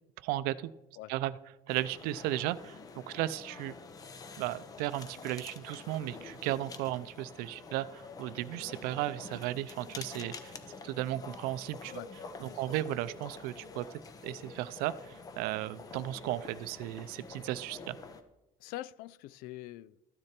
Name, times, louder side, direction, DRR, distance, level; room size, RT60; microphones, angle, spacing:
voice 1, 0.2-0.7 1.1-1.3 1.7-3.8 4.4-10.6 10.8-11.9 12.4-13.9 14.2-18.0, right 15 dB, 75° right, 0.5 m, -35 dB
sound 1, 1.7-18.2, left 4 dB, 25° left, 0.8 m, -47 dB
voice 2, 18.6-20.0, left 15 dB, 75° left, 0.4 m, -44 dB
13.0 x 9.8 x 4.3 m
cardioid pair, 170°, 15 cm